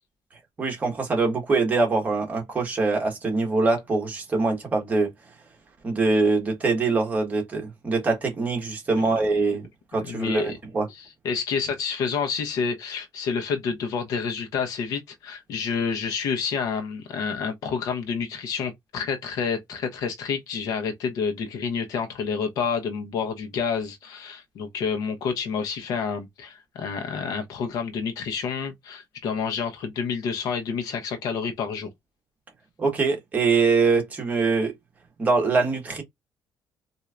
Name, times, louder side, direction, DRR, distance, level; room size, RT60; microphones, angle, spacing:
voice 1, 0.6-5.1 5.8-10.9 32.8-34.7 35.2-36.0, right 3 dB, 25° right, 1.4 m, -23 dB
voice 2, 10.0-10.5 11.2-31.9, left 6 dB, 70° left, 0.9 m, -29 dB
4.2 x 2.7 x 2.4 m
cardioid pair, 160°, 6 cm